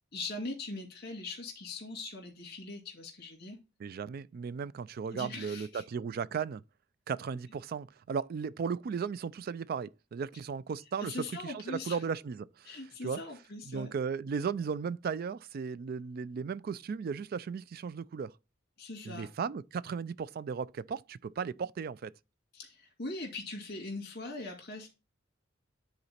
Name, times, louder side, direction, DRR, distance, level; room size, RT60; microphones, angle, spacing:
voice 1, 0.1-3.6 5.1-5.8 11.0-12.0 12.6-13.9 18.8-19.3 22.5-24.9, left 2 dB, 50° left, 2.3 m, -41 dB
voice 2, 3.8-6.6 7.1-13.2 13.7-18.3 19.1-22.1, right 6 dB, 50° right, 0.3 m, -36 dB
9.7 x 4.0 x 4.2 m
head